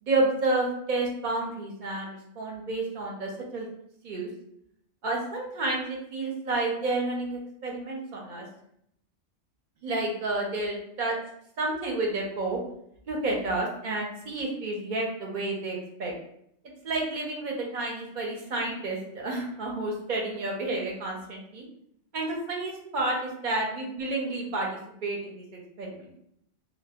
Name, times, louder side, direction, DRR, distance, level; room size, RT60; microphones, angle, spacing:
voice 1, 0.0-3.7 4.0-4.3 5.0-8.5 9.8-11.2 11.6-12.6 13.1-16.1 16.8-21.6 22.1-25.4 25.8-26.1, right 2 dB, 55° right, -1 dB, 0.6 m, -30 dB
2.0 x 2.0 x 3.4 m, 0.73 s
omnidirectional pair, 1.2 m